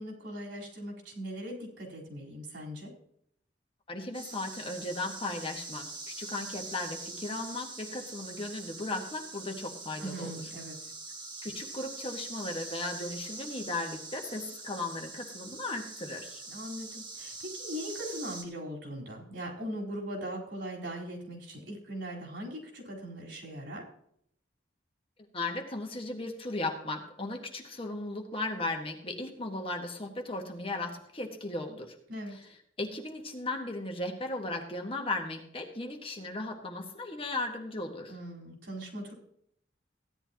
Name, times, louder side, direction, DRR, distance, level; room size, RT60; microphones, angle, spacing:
voice 1, 0.0-2.9 10.0-10.9 16.5-23.8 32.1-32.4 38.1-39.1, equal, 75° right, -2 dB, 4.3 m, -40 dB
voice 2, 3.9-10.3 11.4-16.4 25.3-31.9 32.3-32.4 32.8-38.2, left 2 dB, 30° left, 3 dB, 1.7 m, -36 dB
sound 1, 4.1-18.4, right 3 dB, 25° right, 2.1 m, -43 dB
16.0 x 11.0 x 3.0 m, 0.70 s
head